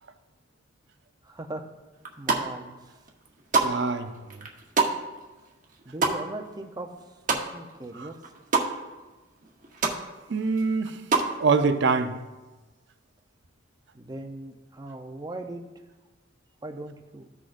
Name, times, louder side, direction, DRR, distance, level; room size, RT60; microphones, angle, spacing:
voice 1, 1.2-1.7 2.2-3.0 5.9-6.9 7.3-8.3 13.9-15.7 16.6-17.3, right 2 dB, 20° right, 4 dB, 0.7 m, -39 dB
sound 1, 2.0-2.7 3.1-7.8 8.1-8.7 9.1-9.2 9.4-10.0 10.4-11.3, right 4 dB, 40° right, 1.0 m, -27 dB
voice 2, 3.6-4.1 8.0-8.1 10.3-11.0 11.4-12.1, right 4 dB, 65° right, 8 dB, 0.6 m, -24 dB
14.5 x 6.1 x 2.6 m, 1.2 s
head